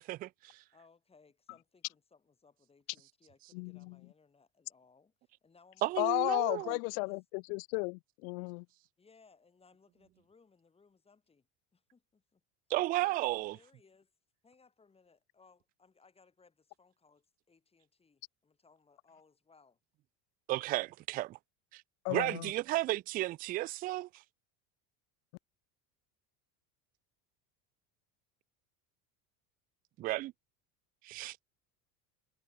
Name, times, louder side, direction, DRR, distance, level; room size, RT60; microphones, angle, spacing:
voice 1, 0.0-0.6 5.8-6.8 12.7-13.6 20.5-21.4 21.7-21.8 22.1-24.2 30.0-30.3 31.0-31.4, right 18 dB, 25° right, 0.3 m, -33 dB
voice 2, 0.7-6.1 6.4-7.2 9.0-11.5 11.7-12.4 13.0-14.1 14.4-19.8, left 4 dB, 15° left, 7.5 m, -65 dB
voice 3, 3.5-4.0 6.0-8.7 22.0-22.5, left 36 dB, 65° left, 0.5 m, -34 dB
cardioid pair, 170°, 43 cm